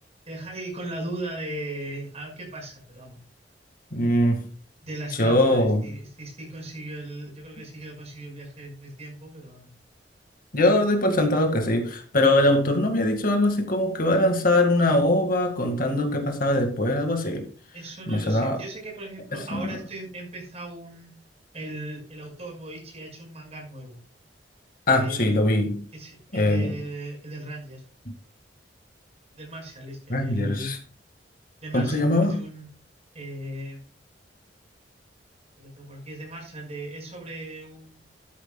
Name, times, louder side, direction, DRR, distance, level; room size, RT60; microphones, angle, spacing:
voice 1, 0.2-3.2 4.8-9.7 17.7-21.1 21.5-24.0 24.9-25.4 25.9-27.8 29.4-30.8 31.6-32.7 33.1-33.8 35.6-38.0, right 1 dB, 40° right, 5.6 m, -38 dB
voice 2, 3.9-4.4 5.2-5.9 10.5-17.4 18.1-18.6 19.5-19.8 24.9-25.8 26.3-26.8 30.1-30.8 31.7-32.4, left 1 dB, 55° left, 2.1 m, -22 dB
12.5 x 9.8 x 2.4 m
head